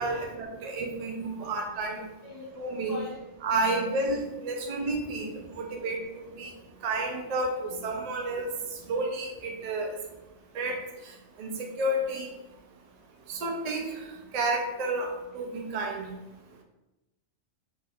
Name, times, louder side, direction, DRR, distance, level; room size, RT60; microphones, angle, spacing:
voice 1, 0.0-2.0 2.6-3.0 3.4-6.5 6.8-8.5 8.9-10.0 10.5-10.8 11.4-12.3 13.3-14.1 14.3-16.1, right 2 dB, 75° right, 2 dB, 0.3 m, -31 dB
voice 2, 2.0-3.2 3.6-3.8 4.3-4.7 5.5-5.8, left 2 dB, 65° left, -4 dB, 0.4 m, -44 dB
2.6 x 2.3 x 3.4 m, 0.98 s
omnidirectional pair, 1.3 m